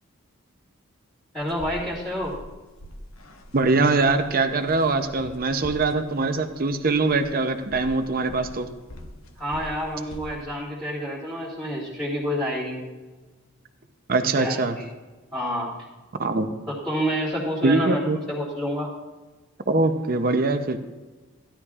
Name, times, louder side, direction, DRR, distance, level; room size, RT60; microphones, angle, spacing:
voice 1, 1.3-2.3 9.4-12.8 14.4-14.8 15.3-15.7 16.7-18.0 18.3-18.9, equal, ahead, -8 dB, 2.3 m, -28 dB
sound 1, 1.4-10.4, equal, 80° left, 1.1 m, -44 dB
voice 2, 3.5-8.7 14.1-14.8 16.1-16.5 17.6-18.2 19.7-20.8, right 3 dB, 45° right, 8 dB, 0.7 m, -22 dB
16.0 x 11.5 x 2.4 m, 1.2 s
head